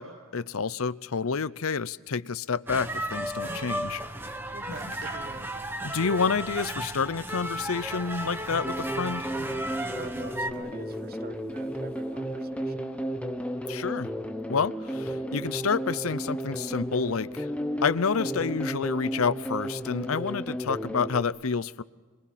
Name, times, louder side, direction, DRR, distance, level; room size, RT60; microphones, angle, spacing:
voice 1, 0.0-4.0 5.8-9.3 13.7-14.1 14.5-17.5 17.8-21.8, left 5 dB, 85° left, 16 dB, 0.7 m, -29 dB
sound 1, 2.7-10.5, right 1 dB, 10° right, 1.3 m, -34 dB
sound 2, 3.4-3.9 4.2-4.3 4.6-5.9 6.2-7.1 7.5-8.4 9.0-10.0 10.5-11.2 11.5-12.2 12.9-13.0, right 1 dB, 85° right, 7.3 m, -48 dB
voice 2, 4.5-5.5 9.9-13.0, right 3 dB, 45° right, 13 dB, 1.0 m, -45 dB
sound 3, 8.5-21.2, equal, 5° left, 1.1 m, -33 dB
26.5 x 22.5 x 7.3 m, 1.4 s
head